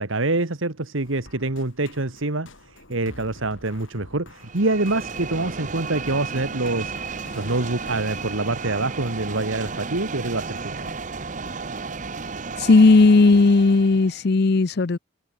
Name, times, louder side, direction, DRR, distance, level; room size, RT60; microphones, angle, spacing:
voice 1, 0.0-6.9 7.4-10.9, right 2 dB, 75° right, 1.8 m, -26 dB
sound 1, 1.0-12.0, left 2 dB, 70° left, 7.5 m, -49 dB
sound 2, 4.4-14.2, right 4 dB, 40° right, 0.9 m, -33 dB
voice 2, 12.6-15.0, left 3 dB, 50° left, 0.6 m, -15 dB
head